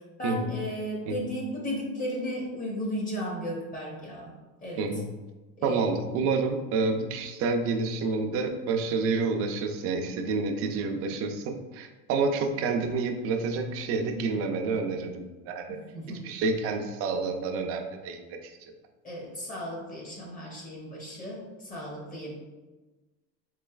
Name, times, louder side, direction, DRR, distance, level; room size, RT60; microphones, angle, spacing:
voice 1, 0.2-4.3 4.6-4.9 5.6-5.8 15.7-16.2 19.0-21.4 21.7-22.3, equal, 25° left, -2 dB, 0.8 m, -35 dB
voice 2, 4.8-5.1 5.6-15.8 16.1-18.5, right 4 dB, 45° right, 5 dB, 0.4 m, -29 dB
3.8 x 3.2 x 2.3 m, 1.2 s
cardioid pair, 145°, 32 cm